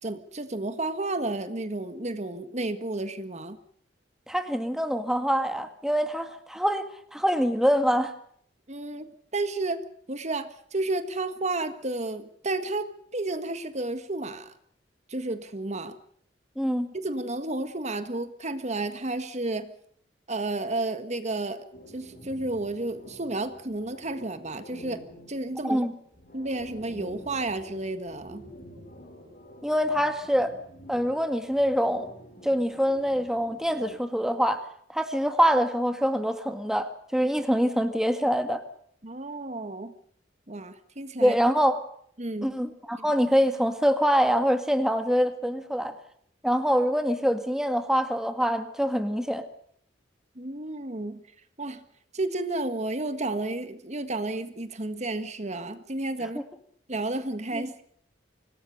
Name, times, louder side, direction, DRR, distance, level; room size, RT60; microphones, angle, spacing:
voice 1, 0.0-3.6 8.7-9.1 9.3-9.8 10.1-14.5 15.1-15.9 16.9-19.7 20.3-21.6 21.9-25.0 25.3-25.9 26.3-28.4 39.0-39.9 40.5-41.4 42.2-42.5 43.0-43.1 50.3-51.2 51.6-51.8 52.1-56.4 56.9-57.8, right 2 dB, 40° right, 10 dB, 1.6 m, -32 dB
voice 2, 4.3-8.1 16.6-16.9 25.6-25.9 29.6-30.5 30.9-32.1 32.4-34.6 34.9-38.6 41.2-41.8 42.4-46.0 46.4-49.4 57.5-57.7, equal, 5° right, 8 dB, 1.9 m, -25 dB
sound 1, 21.7-34.0, equal, 45° left, 6.5 m, -48 dB
26.0 x 19.5 x 6.6 m, 0.64 s
head